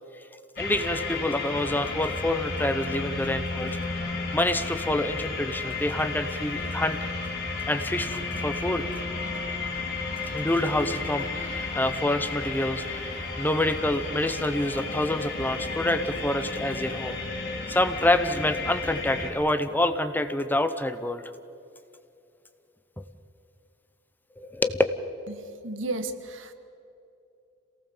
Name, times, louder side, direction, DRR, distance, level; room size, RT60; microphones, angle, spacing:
sound 1, 0.6-19.3, left 3 dB, 55° left, 4.4 m, -33 dB
voice 1, 0.6-3.8 4.3-7.0 7.7-8.9 10.3-17.2 17.7-21.2 24.4-24.8, left 1 dB, 10° left, 10 dB, 0.9 m, -27 dB
voice 2, 25.3-26.5, right 2 dB, 70° right, 8 dB, 1.7 m, -34 dB
27.0 x 18.5 x 7.3 m, 2.7 s
head